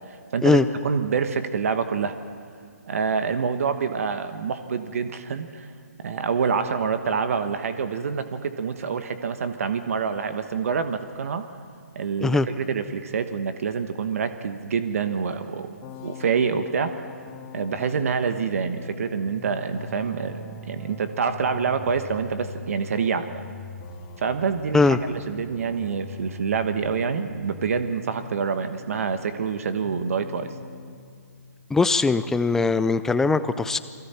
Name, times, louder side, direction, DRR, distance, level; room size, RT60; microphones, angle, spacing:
voice 1, 0.3-2.2 2.9-5.7 6.0-11.5 11.9-12.4 12.7-15.8 16.0-17.0 17.5-23.4 24.2-30.5, right 6 dB, 55° right, 9 dB, 1.3 m, -26 dB
sound 1, 15.8-29.6 29.8-31.0, left 3 dB, 25° left, 2.4 m, -41 dB
voice 2, 31.7-33.8, left 4 dB, 5° left, 13 dB, 0.5 m, -20 dB
29.0 x 23.0 x 4.4 m, 2.3 s
figure-of-eight pair, 140°, 9 cm